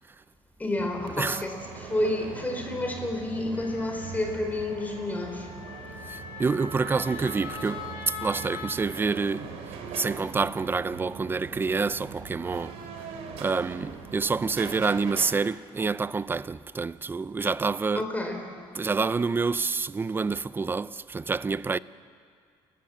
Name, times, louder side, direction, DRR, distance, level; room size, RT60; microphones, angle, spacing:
voice 1, 0.6-5.5 18.0-18.4, left 1 dB, 15° left, 3.8 m, -30 dB
sound 1, 0.8-15.3, right 6 dB, 80° right, 3.2 m, -41 dB
Wind instrument woodwind instrument, 3.5-8.7, left 4 dB, 80° left, 6.8 m, -41 dB
voice 2, 6.1-12.8 13.4-18.1 18.7-21.8, right 4 dB, 20° right, 0.5 m, -28 dB
29.0 x 15.0 x 7.6 m
cardioid pair, 115°, 11 cm